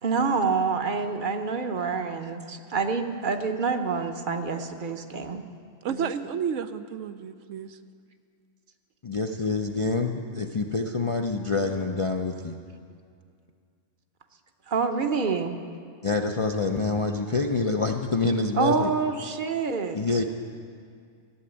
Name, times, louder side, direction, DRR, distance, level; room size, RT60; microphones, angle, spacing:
voice 1, 0.0-5.4 5.9-6.1 14.7-15.5 18.5-20.2, right 5 dB, 45° right, 6 dB, 0.9 m, -27 dB
voice 2, 5.8-7.8, right 7 dB, 80° right, 10 dB, 1.0 m, -31 dB
voice 3, 9.0-12.6 16.0-18.9 19.9-20.2, left 3 dB, 40° left, 2 dB, 0.4 m, -26 dB
14.0 x 7.8 x 9.9 m, 2.2 s
omnidirectional pair, 1.3 m